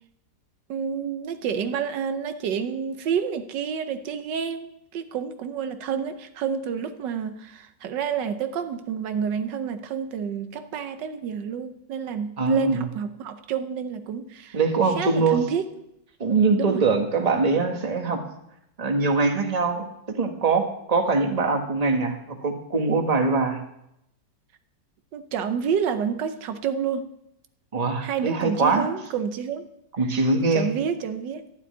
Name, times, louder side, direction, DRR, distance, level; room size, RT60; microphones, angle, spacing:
voice 1, 0.7-14.6 15.0-15.6 16.6-16.8 25.1-27.1 28.0-29.7 30.5-31.5, right 7 dB, 80° right, 1.5 m, -29 dB
voice 2, 12.4-12.9 14.5-15.4 16.2-18.3 18.8-23.6 27.7-28.9 30.0-30.7, right 4 dB, 25° right, 1.3 m, -23 dB
12.0 x 7.4 x 9.4 m
omnidirectional pair, 1.9 m